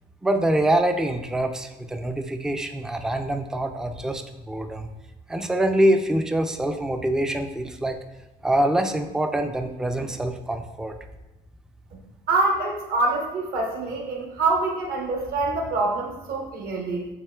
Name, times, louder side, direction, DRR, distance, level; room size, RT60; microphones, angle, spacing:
voice 1, 0.2-4.9 5.3-8.0 8.4-10.9, right 1 dB, 5° right, 6 dB, 0.3 m, -24 dB
voice 2, 12.3-17.1, right 3 dB, 65° right, 0 dB, 1.1 m, -25 dB
7.4 x 2.9 x 2.3 m, 1.1 s
cardioid pair, 110°, 17 cm